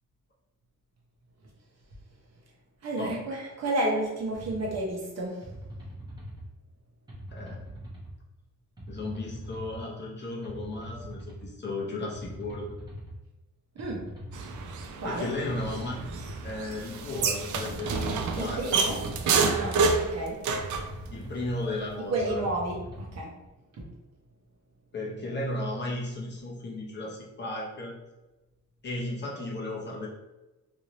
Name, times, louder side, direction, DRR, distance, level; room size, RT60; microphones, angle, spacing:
voice 1, 2.8-5.5 13.7-14.1 15.0-15.3 18.4-19.0 19.4-20.4 22.1-23.3 23.7-23.9, right 1 dB, 55° right, -2 dB, 0.9 m, -31 dB
sound 1, 4.3-4.8 5.4-6.4 7.1-8.1 8.8-9.8 10.4-11.5 12.1-13.1 13.8-14.8 15.5-16.5 17.1-18.2 18.8-19.8 20.5-21.5 22.2-23.2, right 1 dB, 15° right, 0.8 m, -42 dB
voice 2, 7.3-7.6 8.9-12.7 15.0-16.0 16.4-19.0 21.1-22.4 24.9-27.9 28.8-30.1, left 2 dB, 35° left, -3 dB, 0.7 m, -35 dB
sound 2, 14.3-20.9, right 4 dB, 70° right, 0.5 m, -29 dB
3.1 x 2.6 x 2.9 m, 1.1 s
wide cardioid pair, 175°, 31 cm